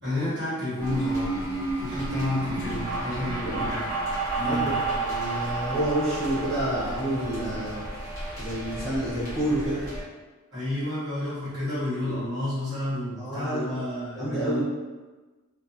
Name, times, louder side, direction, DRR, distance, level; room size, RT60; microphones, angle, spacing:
voice 1, 0.0-1.5 1.8-3.8 4.3-4.8 10.5-14.6, left 1 dB, 50° right, -11 dB, 1.4 m, -30 dB
sound 1, 0.8-10.0, right 2 dB, 15° right, 1.1 m, -31 dB
voice 2, 4.4-7.9 8.4-9.8 13.2-13.6 14.1-14.6, right 1 dB, ahead, -12 dB, 0.9 m, -29 dB
2.8 x 2.2 x 2.6 m, 1.3 s
head